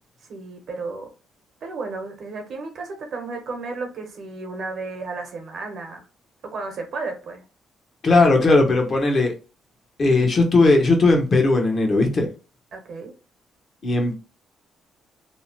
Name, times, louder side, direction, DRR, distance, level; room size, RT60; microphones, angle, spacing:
voice 1, 0.3-1.1 1.6-6.1 6.4-7.4 12.7-13.1, right 3 dB, 65° right, 0.8 m, -33 dB
voice 2, 8.0-9.3 10.0-12.3 13.8-14.2, left 3 dB, 45° left, 0.8 m, -17 dB
2.8 x 2.0 x 2.9 m
cardioid pair, 90°, 0 cm